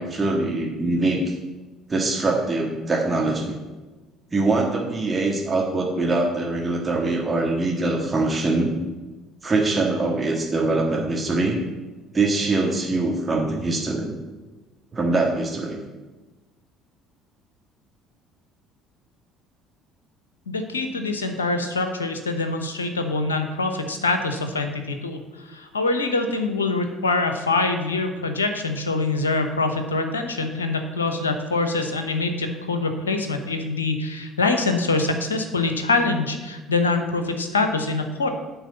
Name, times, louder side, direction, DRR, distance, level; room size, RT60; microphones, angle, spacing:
voice 1, 0.0-1.3 1.9-3.6 4.3-8.8 9.4-11.6 12.1-14.1 14.9-15.8, right 2 dB, 25° right, -1 dB, 1.6 m, -23 dB
voice 2, 20.5-38.3, left 3 dB, 85° left, 7 dB, 0.8 m, -24 dB
9.1 x 4.0 x 6.9 m, 1.2 s
figure-of-eight pair, 55°, 0 cm